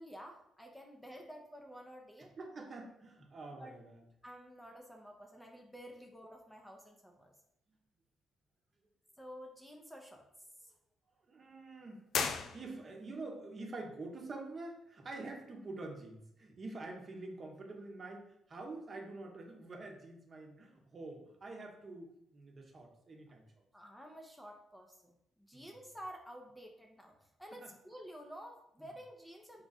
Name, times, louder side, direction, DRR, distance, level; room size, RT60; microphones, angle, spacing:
voice 1, 0.0-2.3 3.5-3.7 4.2-7.3 9.2-10.2 10.6-10.7 23.7-25.1 25.4-29.6, equal, 5° left, 1 dB, 0.7 m, -51 dB
voice 2, 2.2-4.0 11.3-12.0 12.5-23.4 25.5-25.7 27.6-27.7 28.8-28.9, right 2 dB, 40° right, 2 dB, 0.9 m, -47 dB
sound 1, 12.1-13.2, left 6 dB, 70° left, 0.4 m, -36 dB
4.7 x 2.4 x 4.1 m, 0.78 s
cardioid pair, 90°, 0 cm